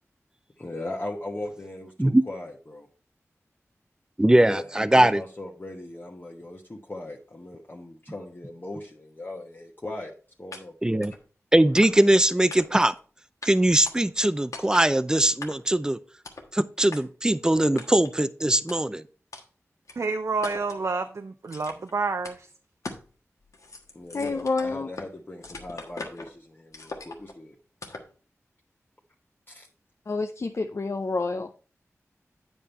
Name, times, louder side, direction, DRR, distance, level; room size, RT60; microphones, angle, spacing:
voice 1, 0.6-2.9 4.3-10.1 10.4-10.7 23.9-27.6 29.5-29.7, left 2 dB, 35° left, 1.2 m, -39 dB
voice 2, 4.2-5.2 10.8-11.1 11.5-12.9 13.4-16.0 16.5-19.0, right 1 dB, 15° right, 0.5 m, -21 dB
Chopping small wood pieces, 10.5-10.6 11.0-11.2 11.8-12.2 12.5-13.0 13.4-13.5 13.9-14.3 14.5-14.9 15.4-15.8 16.2-16.5 16.9-17.0 17.8-18.1 18.7-18.8 19.3-19.4 19.9-20.0 20.4-20.8 21.5-21.9 22.2-22.4 22.8-23.1 23.4-25.1 25.4-26.3 26.7-27.3 27.8-28.1, left 3 dB, 80° left, 1.3 m, -40 dB
voice 3, 20.0-22.5, right 4 dB, 65° right, 0.6 m, -29 dB
voice 4, 24.1-24.9 30.1-31.6, left 3 dB, 55° left, 0.6 m, -28 dB
8.7 x 5.4 x 4.3 m
cardioid pair, 50°, 5 cm